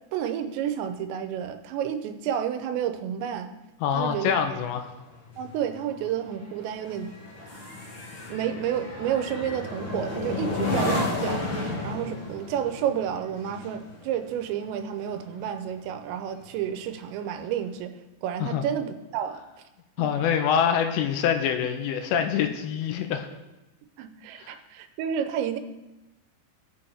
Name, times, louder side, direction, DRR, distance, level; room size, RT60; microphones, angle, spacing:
voice 1, 0.1-3.5 3.9-4.6 5.4-7.1 8.3-17.9 18.2-19.4 20.0-20.1 24.0-25.6, right 9 dB, 85° right, 8 dB, 2.9 m, -30 dB
voice 2, 3.8-4.9 18.4-18.6 20.0-23.3 24.4-24.5, left 8 dB, 85° left, 6 dB, 3.0 m, -25 dB
sound 1, 4.3-16.0 16.4-16.7, left 2 dB, 50° left, 1.4 m, -33 dB
16.5 x 7.0 x 3.4 m, 1.0 s
omnidirectional pair, 5.1 m